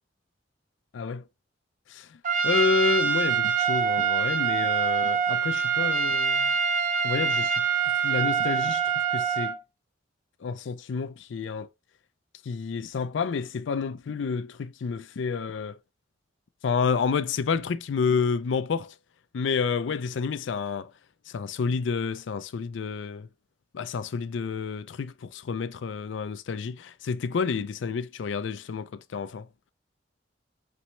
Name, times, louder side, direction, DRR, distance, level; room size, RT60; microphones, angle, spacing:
voice 1, 1.9-6.5 7.0-7.6 8.0-9.6 10.4-11.7 12.4-15.8 16.6-18.9 19.3-20.9 21.3-23.3 23.7-29.5, left 5 dB, 75° left, 0.4 m, -29 dB
Trumpet, 2.2-9.6, right 7 dB, 40° right, 0.7 m, -25 dB
4.2 x 3.1 x 3.0 m
head